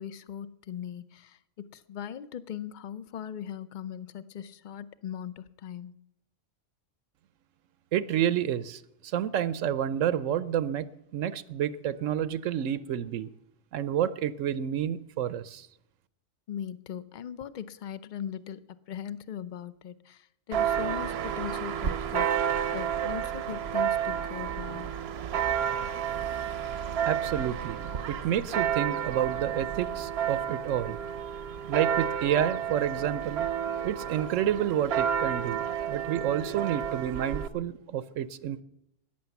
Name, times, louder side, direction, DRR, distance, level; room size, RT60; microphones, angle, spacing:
voice 1, 0.0-5.9 16.5-18.6 18.9-22.5 22.7-24.9, left 9 dB, 50° left, 16 dB, 0.6 m, -39 dB
voice 2, 7.9-10.9 11.1-13.3 13.7-15.7 27.0-27.8 28.1-31.0 31.7-33.5 33.8-35.6 35.9-38.6, right 10 dB, 90° right, 16 dB, 1.1 m, -29 dB
Church bell, 20.5-37.5, right 9 dB, 60° right, 0.8 m, -31 dB
14.0 x 10.0 x 7.0 m, 0.79 s
omnidirectional pair, 1.3 m